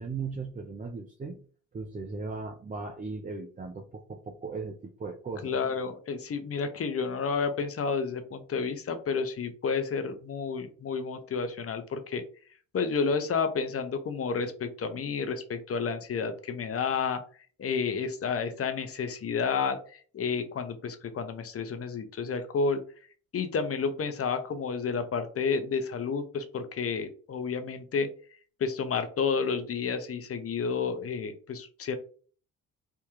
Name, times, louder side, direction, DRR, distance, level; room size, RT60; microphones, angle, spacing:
voice 1, 0.0-1.4 1.7-5.6, right 4 dB, 20° right, 2 dB, 0.5 m, -37 dB
voice 2, 5.4-12.2 12.7-17.2 17.6-22.8 23.3-28.1 28.6-32.0, left 5 dB, 40° left, 9 dB, 0.7 m, -30 dB
3.5 x 2.3 x 3.1 m, 0.42 s
hypercardioid pair, 55°, 38 cm